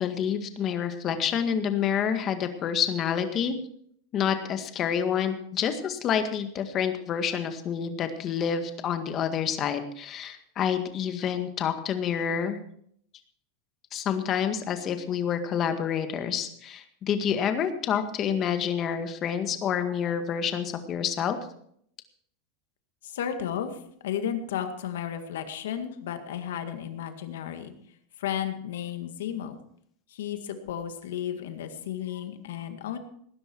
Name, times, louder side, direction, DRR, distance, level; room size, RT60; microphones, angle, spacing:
voice 1, 0.0-3.6 4.1-12.6 13.9-21.4, left 8 dB, 35° left, 8 dB, 1.8 m, -28 dB
voice 2, 23.0-27.7 28.2-29.6 30.1-33.0, left 9 dB, 85° left, 7 dB, 2.0 m, -33 dB
19.0 x 10.5 x 4.6 m, 0.66 s
supercardioid pair, 135°, 0 cm